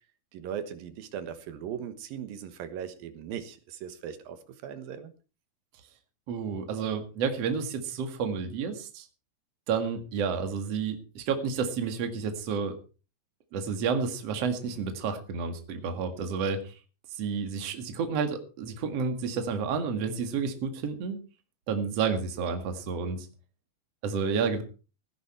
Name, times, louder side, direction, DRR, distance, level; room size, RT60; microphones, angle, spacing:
voice 1, 0.3-5.1, right 8 dB, 70° right, 10 dB, 3.0 m, -39 dB
voice 2, 6.3-9.1 9.7-12.7 13.5-16.8 17.1-21.2 21.7-23.3 24.0-24.6, right 5 dB, 50° right, 7 dB, 2.5 m, -30 dB
16.5 x 10.5 x 4.4 m, 0.34 s
omnidirectional pair, 4.4 m